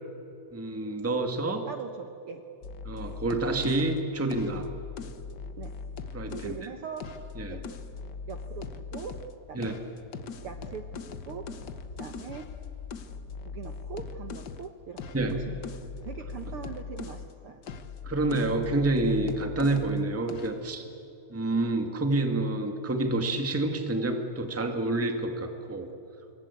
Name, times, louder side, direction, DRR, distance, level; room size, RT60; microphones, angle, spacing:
voice 1, 0.5-1.7 2.8-4.7 6.1-6.6 7.3-7.6 9.5-9.7 15.1-15.4 18.0-20.8 21.3-25.9, right 2 dB, 5° right, 5 dB, 1.5 m, -28 dB
voice 2, 1.6-2.4 5.6-5.7 6.2-7.1 7.5-7.6 8.3-9.2 9.5-9.8 10.4-10.9 11.2-11.5 12.0-12.5 13.4-15.0 15.3-17.6, right 6 dB, 60° right, 6 dB, 1.6 m, -41 dB
sound 1, 2.6-6.6 7.0-9.3 9.6-17.3 17.6-20.0 20.3-20.6, left 5 dB, 60° left, 1.0 m, -40 dB
26.5 x 23.5 x 8.4 m, 2.9 s
omnidirectional pair, 3.5 m